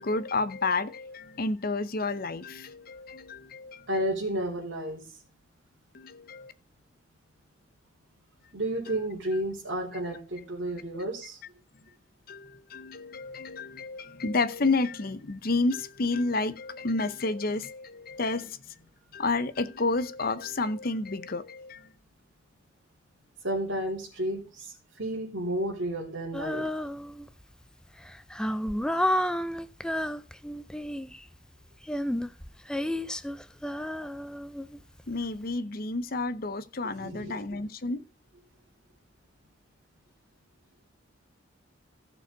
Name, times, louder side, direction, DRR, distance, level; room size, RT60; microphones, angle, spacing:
voice 1, 0.0-4.0 5.9-6.5 8.9-9.0 10.0-10.1 12.3-18.7 19.1-21.9 35.1-38.0, left 3 dB, 45° left, 0.8 m, -30 dB
voice 2, 3.9-5.0 8.5-11.4 23.4-26.7 37.0-37.4, right 1 dB, 65° right, 3.7 m, -32 dB
Female singing, 26.3-27.4 28.0-31.2 31.8-35.0, left 1 dB, 5° left, 0.4 m, -31 dB
15.0 x 6.8 x 3.9 m
head